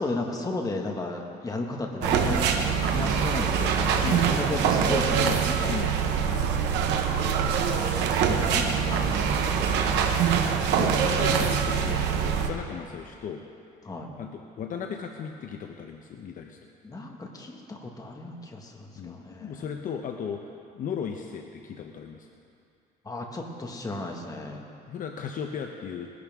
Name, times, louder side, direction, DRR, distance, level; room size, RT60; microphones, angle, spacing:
voice 1, 0.0-2.5 2.9-5.8 7.7-10.0 13.8-14.1 16.8-19.7 23.1-24.6, left 2 dB, 20° left, 1 dB, 1.8 m, -34 dB
sound 1, 2.0-12.5, right 7 dB, 90° right, 1.1 m, -24 dB
voice 2, 5.2-6.5 10.8-13.4 14.2-16.6 19.0-22.3 24.9-26.1, left 7 dB, 55° left, 3 dB, 0.9 m, -36 dB
21.0 x 11.5 x 3.7 m, 2.5 s
cardioid pair, 110°, 17 cm